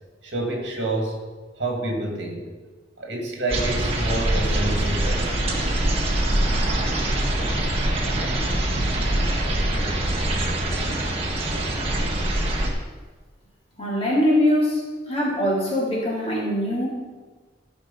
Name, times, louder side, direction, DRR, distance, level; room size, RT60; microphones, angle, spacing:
voice 1, 0.2-1.2 1.6-2.5 3.0-5.3, right 2 dB, 70° right, 1 dB, 2.4 m, -28 dB
sound 1, 3.5-12.7, right 1 dB, 35° right, 1.7 m, -23 dB
voice 2, 13.8-16.9, left 1 dB, 35° left, -5 dB, 3.1 m, -22 dB
13.5 x 5.2 x 5.6 m, 1.4 s
head